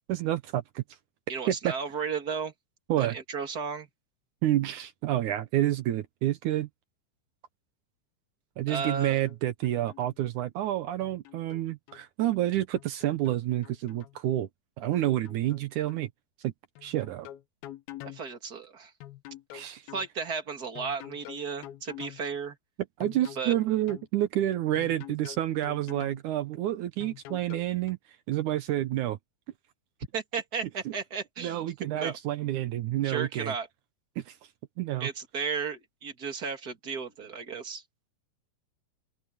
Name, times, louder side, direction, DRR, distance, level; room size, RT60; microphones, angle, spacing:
voice 1, 0.1-0.8 1.5-1.7 2.9-3.2 4.4-6.7 8.6-14.5 14.8-16.1 16.4-16.5 16.8-17.3 19.5-19.8 23.0-28.0 28.3-29.2 30.9-31.0 31.4-33.5 34.2-34.4 34.8-35.1, right 13 dB, 70° right, 2.0 m, -29 dB
voice 2, 1.3-2.5 3.0-3.9 8.7-9.2 18.0-18.9 19.9-22.6 23.4-23.5 30.1-31.6 31.9-32.2 33.0-33.7 35.0-37.8, right 5 dB, 30° right, 2.4 m, -34 dB
sound 1, 8.8-9.4 9.6-10.2 11.0-12.0 12.8-14.2 15.0-15.6 15.9-16.0 16.8-18.2 19.0-20.1 20.8-22.2 23.0-24.1 24.8-26.2 27.0-27.9, left 13 dB, 85° left, 3.0 m, -46 dB
open air
omnidirectional pair, 4.2 m